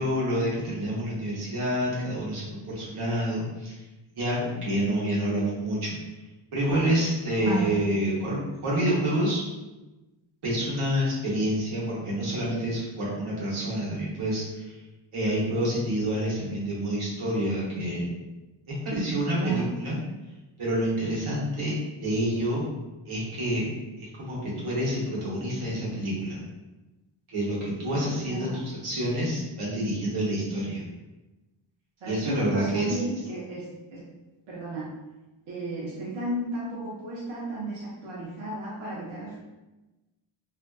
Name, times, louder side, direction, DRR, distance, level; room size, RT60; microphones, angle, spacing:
voice 1, 0.0-3.7 4.1-6.0 6.5-9.4 10.4-14.8 15.1-18.1 18.8-20.0 20.6-21.7 22.0-22.6 23.1-23.7 24.0-26.4 27.3-30.8 32.1-33.0, right 1 dB, 90° right, -7 dB, 1.0 m, -28 dB
voice 2, 7.4-7.8 19.3-19.7 28.3-28.6 32.0-33.6 33.9-34.0 34.5-34.9 35.5-39.4, right 2 dB, 70° right, -6 dB, 0.7 m, -33 dB
2.5 x 2.3 x 2.2 m, 1.1 s
cardioid pair, 55°, 49 cm